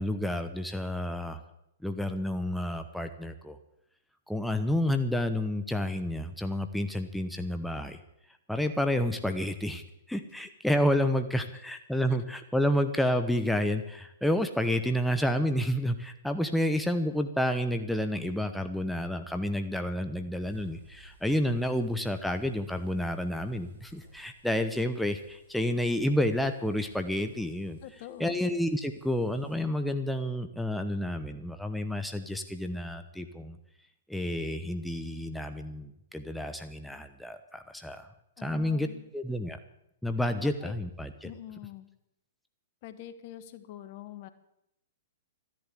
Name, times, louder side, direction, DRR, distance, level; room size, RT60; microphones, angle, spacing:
voice 1, 0.0-1.4 1.8-3.6 4.3-8.0 8.5-27.8 28.2-33.6 34.1-38.1 38.4-38.9 39.1-39.6 40.0-41.3, left 1 dB, ahead, 7 dB, 1.0 m, -30 dB
sound 1, 20.4-29.6, right 2 dB, 65° right, 5.6 m, -58 dB
voice 2, 27.8-28.5 38.4-39.0 40.4-40.7 41.2-41.9 42.8-44.3, left 12 dB, 45° left, 12 dB, 1.2 m, -45 dB
13.5 x 10.5 x 8.4 m, 0.83 s
hypercardioid pair, 120°, 0 cm